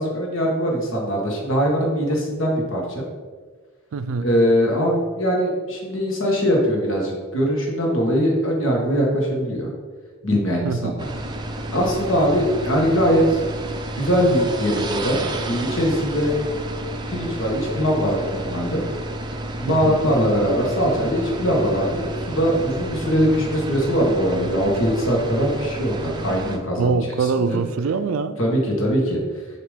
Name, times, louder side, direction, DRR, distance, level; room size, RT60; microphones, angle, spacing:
voice 1, 0.0-3.0 4.2-9.7 10.2-11.1 11.7-13.4 13.9-15.2 15.4-16.3 17.1-18.8 19.6-27.6 28.4-29.2, equal, 65° left, 1.4 m, -21 dB
voice 2, 3.9-4.3 10.6-11.0 19.7-20.0 26.8-28.4, right 4 dB, 80° right, 0.4 m, -23 dB
sound 1, 11.0-26.6, right 1 dB, 20° right, 0.4 m, -31 dB
6.6 x 3.0 x 5.0 m
head